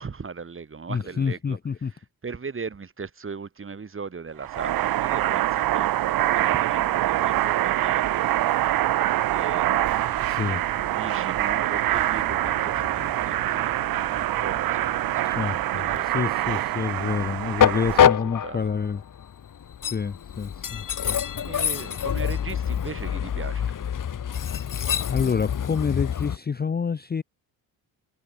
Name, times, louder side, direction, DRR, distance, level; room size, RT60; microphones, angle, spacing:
voice 1, 0.0-5.9 6.3-8.5 9.3-9.7 10.4-16.8 17.6-18.7 21.0-23.8, right 5 dB, 25° right, 2.0 m, -39 dB
voice 2, 0.9-1.9 10.2-10.6 15.2-19.0 19.9-21.2 25.1-27.2, left 6 dB, 20° left, 0.7 m, -28 dB
sound 1, 4.4-18.0, right 14 dB, 50° right, 0.6 m, -25 dB
Train, 9.6-26.4, left 8 dB, 45° left, 1.6 m, -28 dB
supercardioid pair, 75°, 46 cm